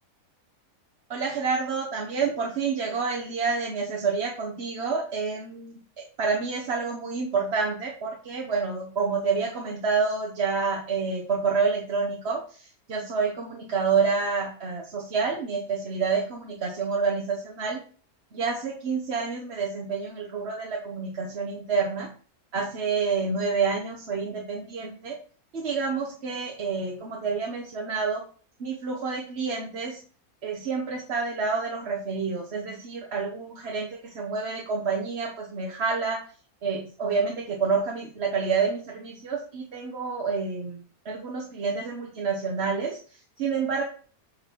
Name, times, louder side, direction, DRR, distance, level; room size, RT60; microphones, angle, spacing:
voice 1, 1.1-17.8 18.3-22.1 22.5-25.2 25.5-28.2 28.6-30.0 30.4-36.2 36.6-43.8, right 5 dB, 45° right, 0 dB, 1.3 m, -28 dB
8.7 x 4.2 x 4.5 m, 0.41 s
omnidirectional pair, 1.6 m